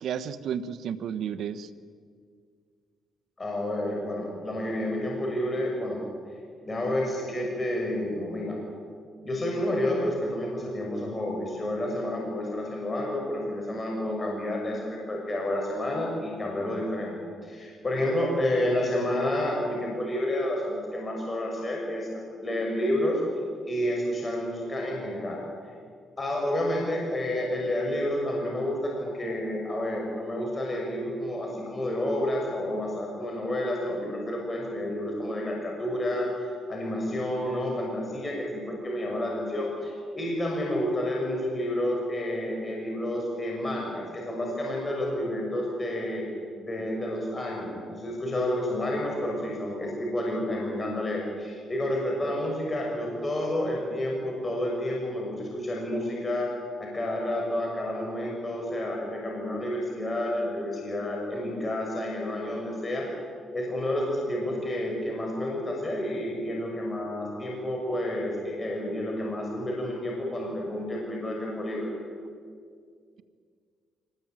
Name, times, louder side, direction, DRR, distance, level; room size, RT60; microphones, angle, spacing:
voice 1, 0.0-1.7, right 8 dB, 70° right, 11 dB, 1.2 m, -32 dB
voice 2, 3.4-6.0 6.6-8.6 9.2-17.2 17.4-23.2 23.6-25.4 26.2-46.3 46.6-56.5 56.8-63.1 63.5-71.9, left 1 dB, 25° left, -1 dB, 6.3 m, -30 dB
25.0 x 20.0 x 9.1 m, 2.1 s
cardioid pair, 90°, 0 cm